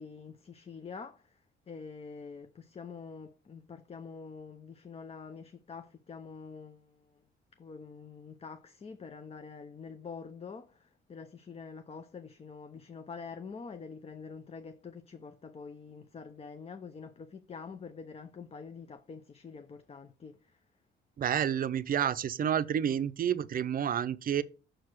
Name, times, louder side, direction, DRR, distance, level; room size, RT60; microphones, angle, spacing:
voice 1, 0.0-7.2 7.6-20.6, left 5 dB, 30° left, 0.5 m, -46 dB
voice 2, 21.2-24.4, right 9 dB, 45° right, 0.5 m, -29 dB
6.2 x 4.7 x 4.5 m
cardioid pair, 90°, 20 cm